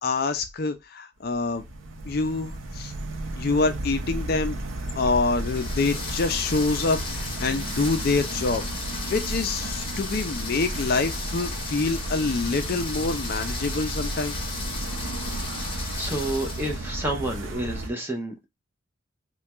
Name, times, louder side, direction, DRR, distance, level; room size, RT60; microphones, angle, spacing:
voice 1, 0.0-1.6 2.1-2.9 3.4-4.6 5.0-8.6 9.1-14.4, left 3 dB, 50° left, 0.4 m, -26 dB
sound 1, 1.3-17.9, right 1 dB, 85° right, 0.7 m, -33 dB
sound 2, 5.2-17.0, left 4 dB, 25° left, 0.8 m, -36 dB
voice 2, 15.9-18.5, right 1 dB, 10° right, 0.7 m, -30 dB
3.3 x 2.3 x 2.9 m
head